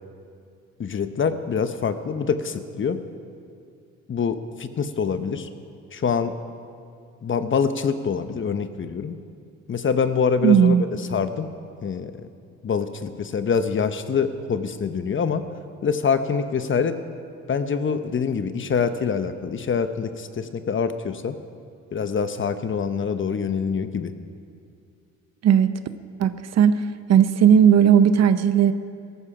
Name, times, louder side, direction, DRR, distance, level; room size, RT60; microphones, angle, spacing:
voice 1, 0.8-3.0 4.1-5.5 5.9-6.3 7.2-9.2 9.7-10.8 11.1-11.5 11.8-12.1 12.6-15.4 15.8-16.9 17.5-21.4 21.9-24.1, left 6 dB, 40° left, 10 dB, 0.9 m, -25 dB
voice 2, 10.4-10.8 25.4-25.7 26.2-26.8 27.1-28.7, right 8 dB, 60° right, 12 dB, 0.8 m, -16 dB
17.0 x 14.0 x 5.0 m, 2.4 s
cardioid pair, 90°, 30 cm